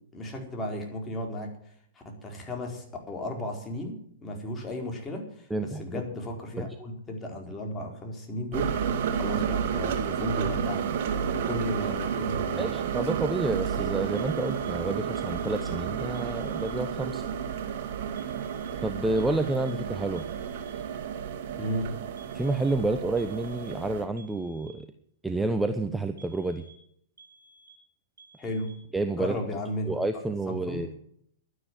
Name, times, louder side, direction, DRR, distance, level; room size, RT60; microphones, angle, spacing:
voice 1, 0.1-1.6 2.0-8.7 9.1-10.9 11.2-12.7 21.6-21.9 28.4-28.7 29.1-29.9 30.5-30.9, left 1 dB, 20° left, 2 dB, 4.4 m, -34 dB
voice 2, 5.5-5.8 6.6-6.7 12.6-17.2 18.8-20.2 22.3-24.9 25.2-26.6 28.9-29.4 29.9-30.9, right 2 dB, 5° right, 8 dB, 1.0 m, -29 dB
sound 1, 8.5-24.0, right 7 dB, 55° right, 2.5 m, -31 dB
sound 2, 14.1-14.8 15.1-15.8 16.1-16.8 18.2-18.8 19.2-19.8 20.2-20.8 22.2-22.8 23.2-23.8 24.2-24.8 26.2-26.9 27.2-27.8 28.2-28.8, right 3 dB, 90° right, 2.0 m, -55 dB
12.0 x 10.0 x 9.2 m, 0.67 s
hypercardioid pair, 115°, 0 cm